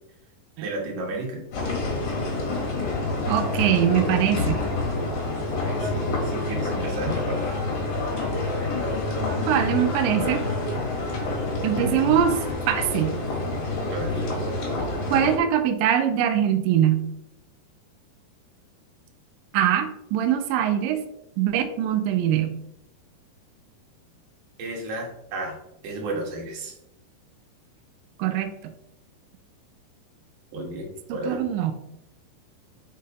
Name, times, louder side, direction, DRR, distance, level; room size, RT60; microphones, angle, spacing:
voice 1, 0.6-1.4 5.6-7.5 13.9-14.3 24.6-25.5 25.8-26.7 30.5-31.4, right 2 dB, 60° right, -1 dB, 2.8 m, -33 dB
sound 1, 1.5-15.4, left 2 dB, 50° left, 2.0 m, -27 dB
voice 2, 3.3-4.6 9.5-10.4 11.6-13.2 15.1-17.1 19.5-21.0 21.4-22.6 28.2-28.5 31.1-31.7, right 10 dB, 85° right, 7 dB, 2.0 m, -22 dB
5.7 x 5.4 x 3.7 m, 0.81 s
omnidirectional pair, 4.8 m